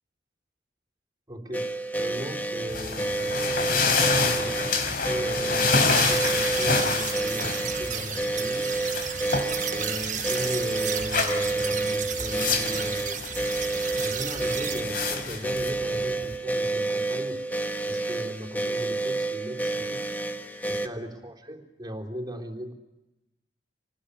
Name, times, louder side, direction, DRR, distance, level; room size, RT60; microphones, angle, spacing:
voice 1, 1.3-1.7 2.0-8.7 9.7-13.2 13.9-17.4 17.9-20.0 20.7-22.7, equal, 25° right, 3 dB, 3.9 m, -38 dB
sound 1, 1.5-20.9, right 2 dB, 10° left, 1.5 m, -30 dB
sound 2, 2.7-16.4, left 4 dB, 50° left, 4.5 m, -28 dB
sound 3, 5.9-14.8, right 9 dB, 45° right, 1.3 m, -34 dB
28.0 x 20.0 x 8.5 m, 0.97 s
head